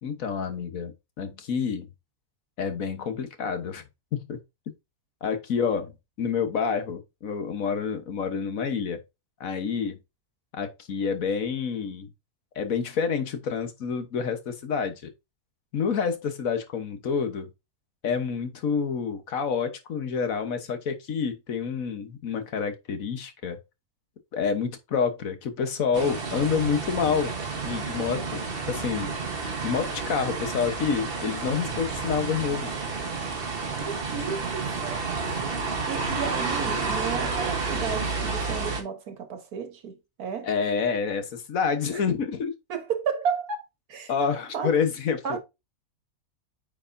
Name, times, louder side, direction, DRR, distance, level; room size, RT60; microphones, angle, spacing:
voice 1, 0.0-1.9 2.6-3.8 4.1-4.4 5.2-5.9 6.2-9.0 9.4-10.0 10.5-12.1 12.5-15.1 15.7-17.5 18.0-23.6 24.3-27.3 27.6-29.1 29.6-32.7 40.4-42.5 44.1-45.4, left 6 dB, 65° left, 1.5 m, -28 dB
sound 1, 25.9-38.8, right 4 dB, 40° right, 1.4 m, -30 dB
voice 2, 33.8-40.5 42.7-43.6 43.9-44.1 44.5-44.7 45.2-45.4, right 6 dB, 85° right, 1.7 m, -33 dB
8.8 x 4.7 x 2.6 m
omnidirectional pair, 1.6 m